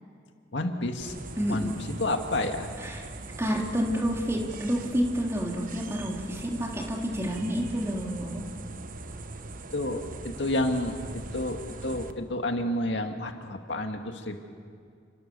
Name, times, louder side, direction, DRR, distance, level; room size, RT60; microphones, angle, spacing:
voice 1, 0.5-1.1 1.5-2.7 9.7-14.4, left 1 dB, 65° left, 5 dB, 2.0 m, -30 dB
sound 1, 1.0-12.1, right 2 dB, 45° right, 1.2 m, -41 dB
voice 2, 1.4-1.8 2.8-3.0 3.4-8.4, equal, 15° right, 0 dB, 3.0 m, -29 dB
30.0 x 28.5 x 7.0 m, 2.3 s
head